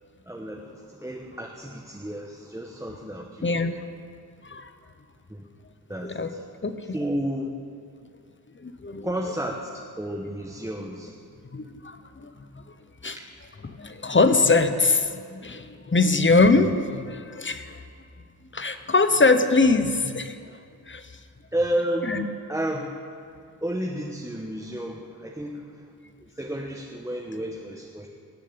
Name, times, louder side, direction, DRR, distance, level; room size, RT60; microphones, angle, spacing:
voice 1, 0.3-3.5 5.3-5.4 5.9-6.4 6.9-7.5 9.0-11.1 13.2-13.3 21.5-23.0 23.6-25.8 26.2-28.1, right 1 dB, 10° right, 0 dB, 1.2 m, -31 dB
voice 2, 3.4-3.8 4.4-4.7 6.0-6.3 6.6-7.0 8.6-9.1 11.5-12.6 13.0-13.2 13.6-17.8 18.5-20.4 20.9-21.1 22.0-22.2, left 3 dB, 30° left, 9 dB, 1.0 m, -23 dB
18.5 x 7.2 x 8.8 m, 2.2 s
wide cardioid pair, 80°, 38 cm